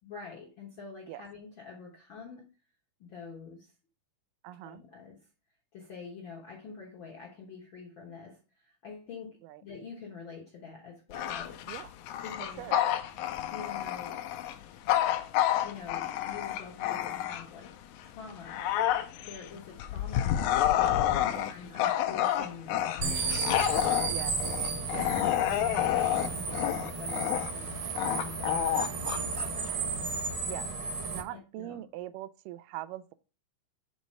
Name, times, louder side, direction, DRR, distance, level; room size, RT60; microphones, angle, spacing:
voice 1, 0.0-2.5 3.0-3.7 4.6-5.3 5.7-11.6 12.2-12.7 13.5-14.3 15.6-18.9 19.2-23.8 24.9-29.9 31.3-31.9, left 5 dB, 65° left, 1.2 m, -46 dB
voice 2, 4.4-4.8 9.4-9.6 11.7-11.9 12.6-12.8 21.3-21.5 24.1-24.4 24.9-25.1 28.7-28.9 30.5-30.7 31.1-33.1, right 15 dB, 85° right, 2.2 m, -41 dB
Bark / Growling, 11.1-17.7 18.1-30.0, left 12 dB, 80° left, 1.8 m, -29 dB
sound 1, 23.0-31.2, right 4 dB, 60° right, 1.5 m, -34 dB
6.1 x 4.1 x 5.3 m
omnidirectional pair, 3.8 m